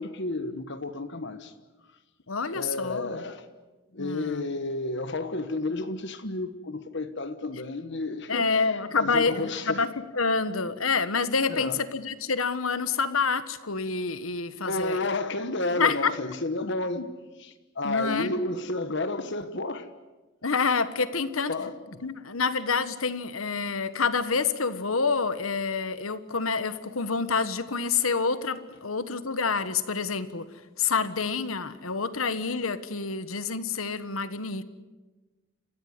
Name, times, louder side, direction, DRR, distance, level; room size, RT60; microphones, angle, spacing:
voice 1, 0.0-1.5 2.5-3.5 3.9-8.5 8.9-9.8 11.5-11.8 14.6-19.9 21.5-22.0, left 2 dB, 60° left, 1.4 m, -31 dB
voice 2, 2.3-3.2 4.0-4.4 8.3-15.0 15.7-16.1 17.8-18.3 20.4-21.5 22.0-30.5 30.8-34.6, left 4 dB, 90° left, 1.4 m, -27 dB
29.5 x 16.0 x 9.7 m
head